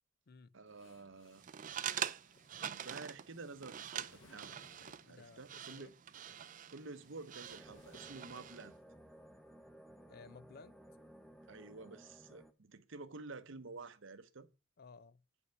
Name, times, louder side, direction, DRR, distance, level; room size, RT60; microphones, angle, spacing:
voice 1, 0.5-1.4 2.6-4.5 5.1-5.9 6.7-8.7 11.5-14.5, right 3 dB, 65° right, 0.9 m, -50 dB
sound 1, 0.7-5.3 6.3-8.8, left 2 dB, 70° left, 2.3 m, -66 dB
sound 2, 1.4-8.7, right 9 dB, 40° right, 0.4 m, -45 dB
voice 2, 5.0-5.9 10.1-10.8 14.8-15.2, left 4 dB, 50° left, 0.5 m, -57 dB
sound 3, 7.5-12.5, equal, ahead, 0.8 m, -57 dB
9.4 x 5.5 x 5.7 m
head